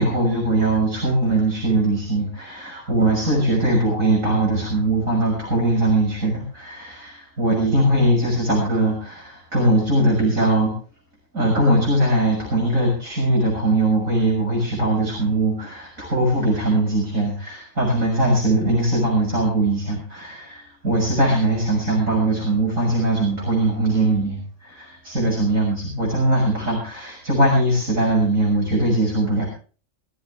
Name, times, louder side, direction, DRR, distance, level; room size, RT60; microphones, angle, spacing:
voice 1, 0.0-10.7 11.3-29.5, right 1 dB, 80° right, -2 dB, 6.7 m, -20 dB
23.0 x 13.0 x 3.4 m, 0.38 s
omnidirectional pair, 1.4 m